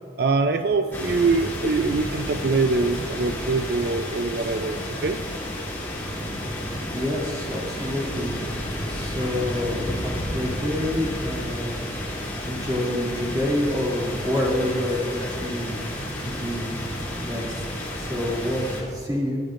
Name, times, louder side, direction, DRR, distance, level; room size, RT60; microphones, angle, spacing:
voice 1, 0.2-5.2, right 3 dB, 60° right, 7 dB, 0.4 m, -23 dB
sound 1, 0.9-18.8, left 1 dB, 10° left, 2.8 m, -31 dB
voice 2, 6.9-8.3 8.9-11.8 12.4-15.9 16.2-16.7 17.2-19.4, left 1 dB, 20° right, -6 dB, 2.6 m, -27 dB
24.0 x 10.5 x 2.5 m, 2.4 s
head